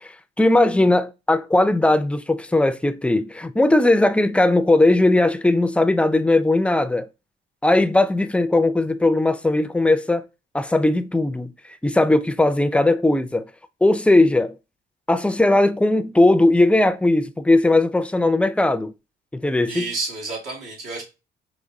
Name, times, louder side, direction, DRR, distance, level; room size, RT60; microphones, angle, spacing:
voice 1, 0.0-7.1 7.6-10.3 10.5-11.5 11.8-13.5 13.8-14.5 15.1-18.9 19.3-19.9, left 2 dB, 5° left, 0.3 m, -18 dB
voice 2, 19.7-21.0, right 3 dB, 85° right, 1.8 m, -30 dB
5.0 x 3.1 x 2.6 m
cardioid pair, 90°, 20 cm